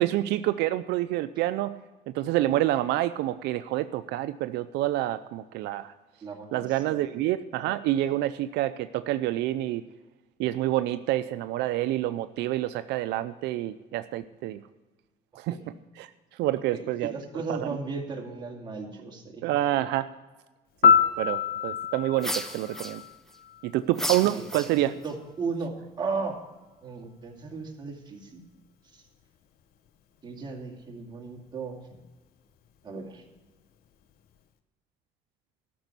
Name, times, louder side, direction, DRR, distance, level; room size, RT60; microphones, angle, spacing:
voice 1, 0.0-1.8 2.1-5.9 6.5-9.8 10.4-14.6 15.4-15.6 16.0-16.1 16.4-17.1 17.5-17.7 19.4-20.1 20.8-23.0 23.6-24.9, right 14 dB, 85° right, 11 dB, 0.5 m, -27 dB
voice 2, 6.2-7.0 8.1-8.2 15.5-15.7 16.7-19.5 24.2-24.5 24.7-26.4 26.8-28.4 28.9-29.0 30.2-31.9 32.8-33.2, right 4 dB, 25° right, 0 dB, 2.5 m, -36 dB
Piano, 20.8-23.8 31.9-32.1, left 7 dB, 65° left, 0.9 m, -25 dB
sound 1, 22.2-23.3 23.9-25.1, equal, ahead, 0.8 m, -34 dB
13.5 x 6.2 x 8.2 m, 1.1 s
cardioid pair, 110°, 17 cm